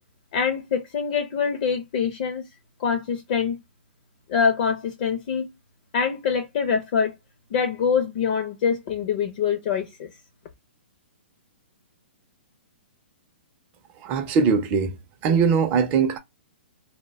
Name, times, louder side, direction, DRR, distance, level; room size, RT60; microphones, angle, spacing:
voice 1, 0.3-2.4 2.8-3.6 4.3-5.5 5.9-7.1 7.5-10.1, left 6 dB, 40° left, 0.5 m, -24 dB
voice 2, 14.0-15.0 15.2-16.2, right 5 dB, 25° right, 0.4 m, -21 dB
2.1 x 2.0 x 3.2 m
hypercardioid pair, 150°, 6 cm